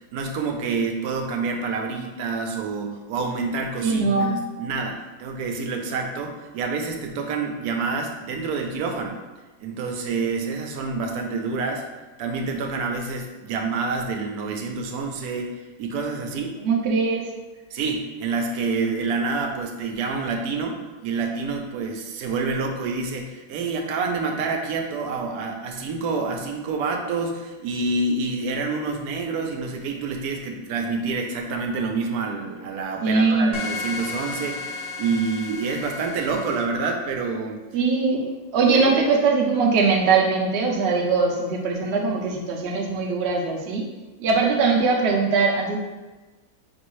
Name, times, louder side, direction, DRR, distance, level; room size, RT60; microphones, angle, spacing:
voice 1, 0.1-9.2 9.6-11.8 12.2-16.6 17.7-37.6 38.7-39.0, right 4 dB, 85° right, 3 dB, 1.1 m, -27 dB
voice 2, 3.8-4.4 16.6-17.3 33.0-33.5 37.7-38.3 38.5-43.9 44.2-45.8, right 4 dB, 55° right, 1 dB, 0.8 m, -21 dB
sound 1, 33.5-36.6, left 4 dB, 70° left, 0.5 m, -33 dB
5.3 x 2.6 x 3.1 m, 1.2 s
omnidirectional pair, 1.6 m